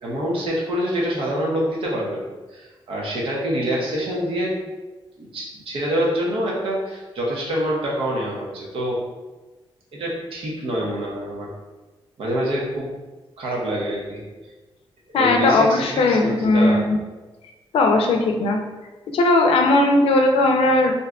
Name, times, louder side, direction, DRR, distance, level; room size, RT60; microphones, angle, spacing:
voice 1, 0.0-4.5 5.2-9.0 9.9-11.5 12.2-12.9 13.4-14.2 15.1-16.8, equal, 70° right, -3 dB, 0.8 m, -26 dB
voice 2, 15.1-17.0 17.7-18.6 19.1-20.9, left 2 dB, 80° left, 3 dB, 0.5 m, -17 dB
2.6 x 2.2 x 3.6 m, 1.2 s
wide cardioid pair, 165°, 10 cm